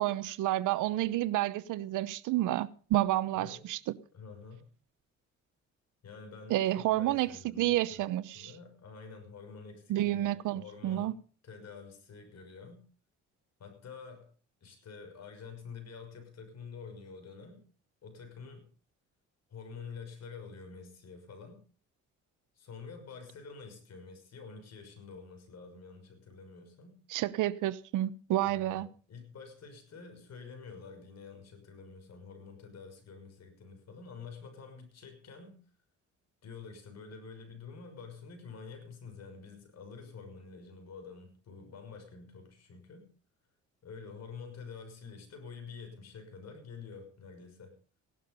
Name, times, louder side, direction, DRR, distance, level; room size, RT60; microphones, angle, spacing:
voice 1, 0.0-3.9 6.5-7.3 7.6-8.5 9.9-11.1 27.1-28.9, right 15 dB, 90° right, 0.9 m, -30 dB
voice 2, 3.3-3.7 4.1-4.7 6.0-8.1 8.3-11.1 11.4-12.9 13.6-14.3 14.6-17.6 18.0-18.7 19.5-21.6 22.6-27.0 28.4-35.6 36.4-43.1 43.8-47.8, left 5 dB, 60° left, 6.1 m, -48 dB
16.5 x 12.0 x 5.4 m
cardioid pair, 90°, 30 cm